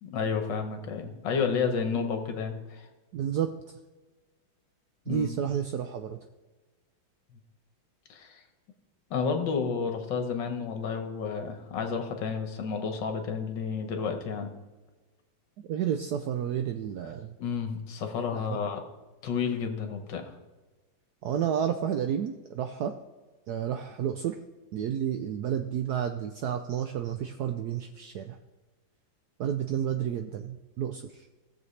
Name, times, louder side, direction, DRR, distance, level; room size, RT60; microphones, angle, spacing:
voice 1, 0.0-2.9 5.1-5.3 8.1-8.4 9.1-14.5 17.4-18.8 19.2-20.3, left 6 dB, 65° left, 5 dB, 1.6 m, -31 dB
voice 2, 3.1-3.5 5.1-6.2 15.7-17.3 18.3-18.6 21.2-22.9 23.5-24.4 24.7-28.4 29.4-31.3, right 9 dB, 75° right, 7 dB, 0.9 m, -31 dB
16.0 x 6.8 x 3.2 m, 1.2 s
omnidirectional pair, 2.2 m